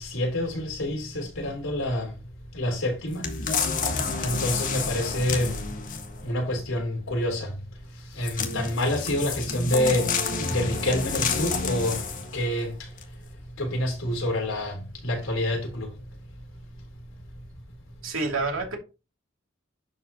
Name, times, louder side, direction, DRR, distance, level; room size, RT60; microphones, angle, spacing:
voice 1, 0.0-2.1 2.5-3.3 4.2-5.6 6.2-7.6 8.1-10.2 10.5-12.9 13.6-15.9, left 1 dB, 80° left, 3.7 m, -27 dB
sound 1, 3.2-6.2 8.2-12.4 13.0-13.1, left 4 dB, 40° left, 1.5 m, -29 dB
voice 2, 18.0-18.8, right 3 dB, 80° right, 2.7 m, -28 dB
11.0 x 5.2 x 2.9 m
head